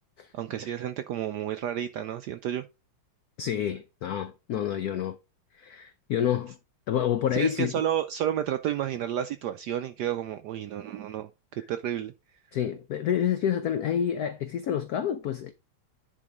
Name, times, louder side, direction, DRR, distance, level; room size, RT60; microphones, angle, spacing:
voice 1, 0.3-2.6 7.3-12.1, right 10 dB, 75° right, 0.9 m, -31 dB
voice 2, 3.4-5.2 5.5-6.6 6.9-7.7 12.5-15.5, left 9 dB, 75° left, 0.8 m, -28 dB
10.0 x 3.8 x 4.9 m
omnidirectional pair, 2.3 m